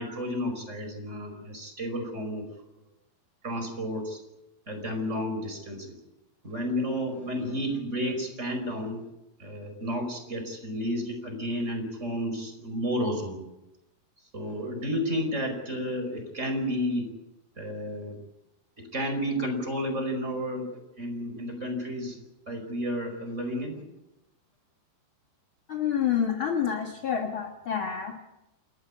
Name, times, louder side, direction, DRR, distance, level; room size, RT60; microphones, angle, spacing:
voice 1, 0.0-2.5 3.4-4.2 4.7-6.0 6.4-9.0 9.4-13.4 14.3-17.1 17.6-18.2 18.8-22.2 22.5-23.8, equal, 15° right, 5 dB, 5.1 m, -31 dB
voice 2, 25.7-28.2, left 8 dB, 55° left, 4 dB, 1.4 m, -28 dB
29.0 x 14.0 x 8.5 m, 0.91 s
omnidirectional pair, 4.7 m